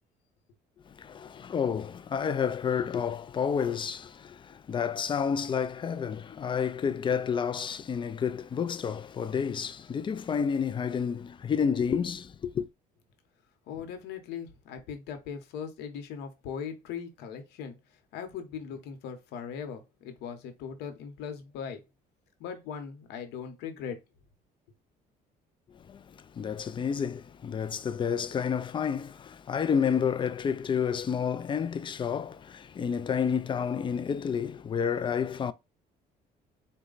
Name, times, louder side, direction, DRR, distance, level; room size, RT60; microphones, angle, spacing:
voice 1, 0.9-12.7 25.9-35.5, left 7 dB, 30° left, 0.4 m, -30 dB
voice 2, 13.7-17.8 18.1-21.8 22.4-24.0, left 7 dB, 85° left, 1.0 m, -39 dB
4.3 x 2.3 x 3.8 m
cardioid pair, 110°, 17 cm